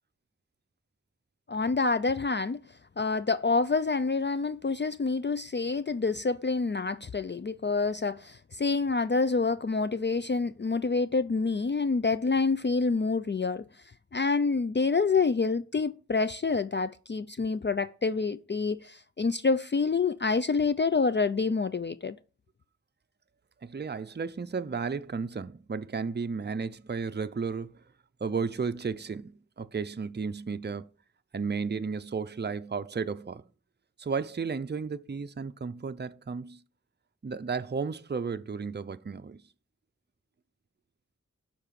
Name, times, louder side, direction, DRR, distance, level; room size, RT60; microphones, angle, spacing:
voice 1, 1.5-2.6 3.0-13.6 14.1-22.2, left 4 dB, 40° left, 0.4 m, -27 dB
voice 2, 23.6-27.8 28.2-30.9 31.3-33.4 34.0-36.6 37.2-39.4, right 5 dB, 35° right, 0.5 m, -33 dB
12.0 x 4.7 x 5.8 m
wide cardioid pair, 60°, 29 cm